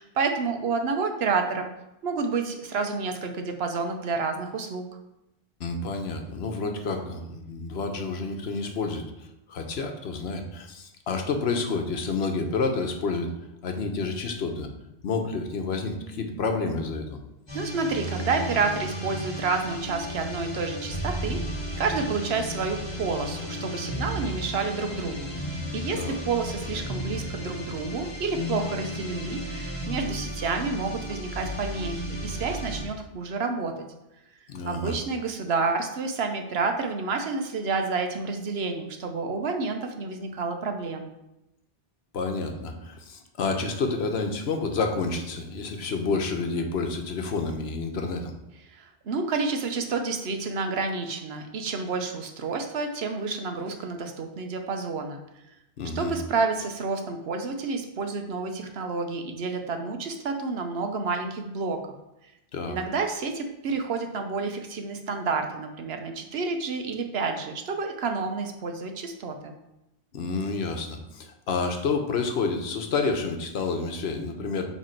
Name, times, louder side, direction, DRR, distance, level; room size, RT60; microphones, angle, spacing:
voice 1, 0.0-1.7 2.0-5.0 17.5-21.4 21.8-25.3 25.7-33.8 34.7-41.1 48.7-55.2 55.9-61.9 62.7-69.5, right 4 dB, 80° right, 5 dB, 1.0 m, -29 dB
voice 2, 5.6-13.3 13.6-14.7 15.0-17.2 25.9-26.2 34.5-35.0 42.1-48.3 55.8-56.1 62.5-62.8 70.1-74.7, left 4 dB, 80° left, 4 dB, 1.1 m, -29 dB
sound 1, 17.5-32.9, equal, 25° left, 1.4 m, -34 dB
7.6 x 3.3 x 4.5 m, 0.90 s
omnidirectional pair, 1.0 m